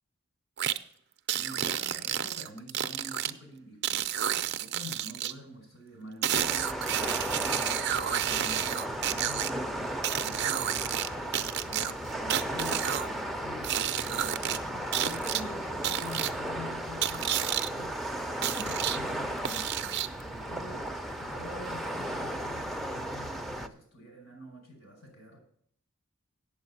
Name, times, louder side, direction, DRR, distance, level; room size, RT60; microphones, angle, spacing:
sound 1, 0.6-0.8 1.3-3.3 3.8-5.3 6.2-9.5 10.0-11.1 11.3-13.1 13.6-14.6 14.9-15.4 15.8-16.3 17.0-17.7 18.4-19.0 19.4-20.2, right 10 dB, 55° right, 0.5 m, -30 dB
voice 1, 1.3-7.7 7.9-25.4, left 1 dB, 70° left, 2 dB, 5.7 m, -47 dB
sound 2, 6.3-23.7, right 1 dB, ahead, 0.6 m, -35 dB
8.5 x 7.6 x 7.0 m, 0.63 s
head